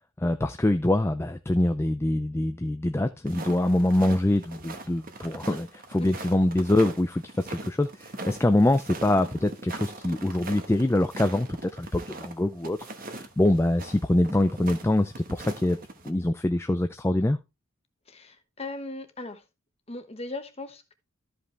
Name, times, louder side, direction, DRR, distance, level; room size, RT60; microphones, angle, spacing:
voice 1, 0.2-15.8 16.0-17.4, left 1 dB, 10° left, 0.4 m, -24 dB
sound 1, 3.3-16.1, right 2 dB, 40° right, 1.2 m, -41 dB
voice 2, 18.1-19.4 19.9-20.9, left 2 dB, 30° left, 1.1 m, -38 dB
13.0 x 5.3 x 3.2 m
head